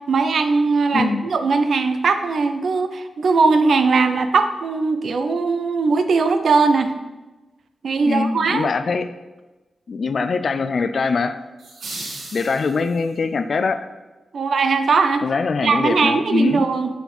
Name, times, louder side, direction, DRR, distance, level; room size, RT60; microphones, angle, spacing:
voice 1, 0.1-6.9 7.8-8.7 14.3-15.3 15.6-16.9, right 4 dB, 60° right, 8 dB, 0.5 m, -19 dB
voice 2, 0.9-1.3 8.0-9.1 9.9-11.4 12.3-13.9 15.2-16.6, left 4 dB, 50° left, 10 dB, 0.3 m, -22 dB
sound 1, 11.6-13.2, right 2 dB, 75° right, 1.8 m, -35 dB
5.7 x 4.2 x 5.9 m, 1.1 s
wide cardioid pair, 160°, 0 cm